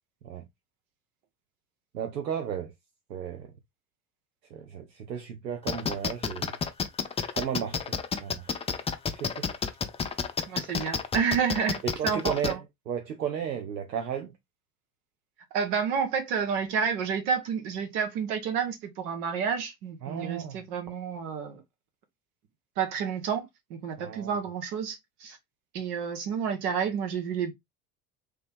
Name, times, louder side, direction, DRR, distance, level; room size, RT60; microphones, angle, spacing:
voice 1, 1.9-2.7 3.1-3.5 4.5-6.5 7.3-7.8 8.2-8.5 9.1-9.5 11.8-12.6 12.9-14.3 20.0-20.6 24.0-24.3, right 8 dB, 85° right, 0.7 m, -34 dB
sound 1, 5.7-12.5, left 5 dB, 15° left, 0.4 m, -29 dB
voice 2, 10.5-12.6 15.5-21.6 22.8-25.4 25.7-27.5, right 6 dB, 70° right, 1.3 m, -30 dB
3.2 x 3.0 x 3.5 m
figure-of-eight pair, 60°, 48 cm